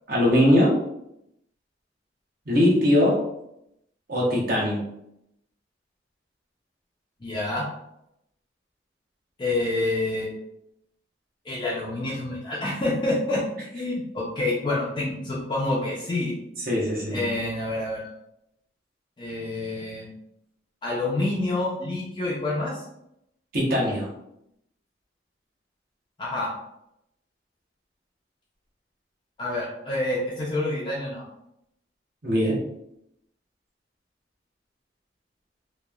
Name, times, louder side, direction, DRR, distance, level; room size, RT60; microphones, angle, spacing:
voice 1, 0.1-0.7 2.5-3.2 4.1-4.8 16.7-17.3 23.5-24.1 32.2-32.6, left 1 dB, 50° right, -3 dB, 0.7 m, -21 dB
voice 2, 7.2-7.7 9.4-10.4 11.5-13.4 13.7-16.3 17.1-18.1 19.2-20.1 20.8-22.8 26.2-26.5 29.4-31.2, left 2 dB, 25° left, -6 dB, 0.4 m, -27 dB
2.9 x 2.0 x 2.3 m, 0.80 s
head